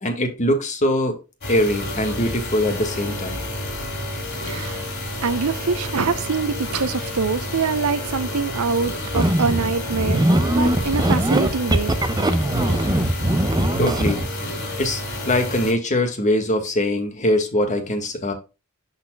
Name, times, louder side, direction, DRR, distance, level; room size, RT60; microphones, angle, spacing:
voice 1, 0.0-1.2 1.5-3.4 13.8-14.2 14.8-18.3, left 1 dB, 35° left, 1.8 m, -22 dB
sound 1, 1.4-15.7, left 1 dB, 55° left, 3.2 m, -30 dB
voice 2, 4.4-4.9 5.2-13.2, right 4 dB, 90° right, 0.7 m, -25 dB
sound 2, 9.1-14.3, right 1 dB, 20° right, 0.7 m, -21 dB
11.5 x 4.2 x 2.3 m
head